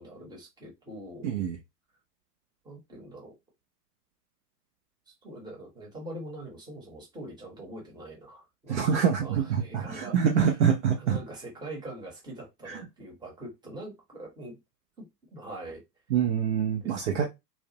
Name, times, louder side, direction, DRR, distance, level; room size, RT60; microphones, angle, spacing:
voice 1, 0.0-1.4 2.6-3.3 5.1-10.6 11.0-14.6 15.3-15.8 16.8-17.3, right 1 dB, 10° right, 0.9 m, -43 dB
voice 2, 1.2-1.6 8.7-11.2 12.7-12.8 16.1-17.3, right 7 dB, 50° right, 0.5 m, -25 dB
2.4 x 2.0 x 2.7 m
figure-of-eight pair, 90°, 49 cm